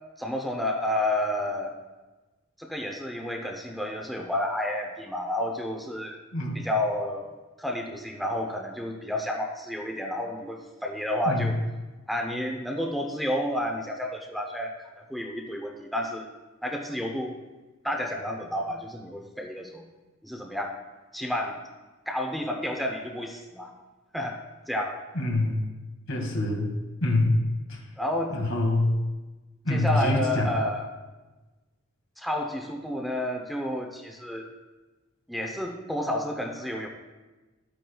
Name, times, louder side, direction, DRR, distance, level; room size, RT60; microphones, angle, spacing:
voice 1, 0.2-1.8 2.6-6.2 6.5-7.3 7.6-11.6 12.1-14.7 15.1-16.3 16.6-17.3 17.8-19.8 20.2-20.8 21.1-21.6 22.1-23.7 24.1-24.4 24.7-25.0 28.0-28.3 29.7-30.9 32.2-34.5 35.3-36.9, left 1 dB, ahead, 1 dB, 0.7 m, -30 dB
voice 2, 6.3-6.6 11.3-11.5 25.2-25.6 26.1-26.7 27.0-27.4 28.3-29.0 29.7-30.5, left 2 dB, 80° left, 0 dB, 2.0 m, -25 dB
12.5 x 9.0 x 2.3 m, 1.2 s
head